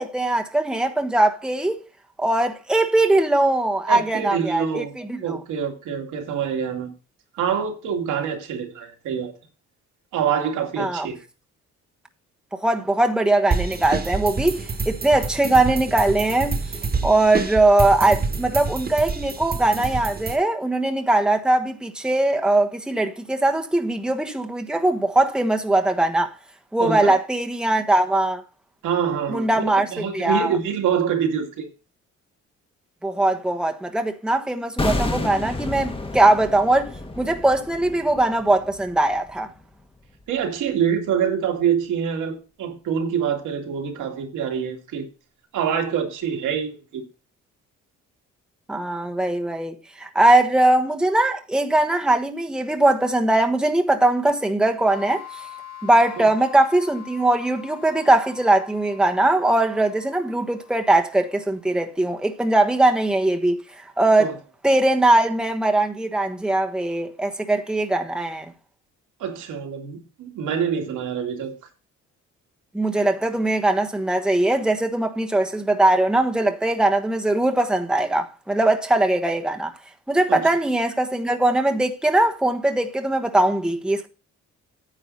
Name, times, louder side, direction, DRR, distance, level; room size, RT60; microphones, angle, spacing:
voice 1, 0.0-1.8 2.2-5.4 10.8-11.1 12.5-16.6 17.0-26.3 26.7-28.4 29.3-29.9 30.1-30.6 33.0-36.9 37.2-39.5 48.7-55.4 55.8-63.6 64.0-64.3 64.6-68.5 72.7-79.7 80.1-84.1, right 2 dB, 5° right, 1.2 m, -20 dB
voice 2, 3.9-4.9 5.2-6.9 7.4-9.3 10.1-11.2 26.8-27.1 28.8-29.6 29.9-31.7 40.3-45.1 45.5-47.0 56.2-56.3 64.2-64.3 69.2-71.5 80.3-80.5, right 7 dB, 85° right, 2.4 m, -25 dB
sound 1, 13.5-20.4, right 4 dB, 30° right, 1.6 m, -28 dB
sound 2, 34.8-39.8 40.1-40.2, left 2 dB, 20° left, 1.5 m, -30 dB
sound 3, 54.9-61.4, left 11 dB, 65° right, 1.7 m, -43 dB
9.7 x 8.0 x 4.0 m
cardioid pair, 90°, 30 cm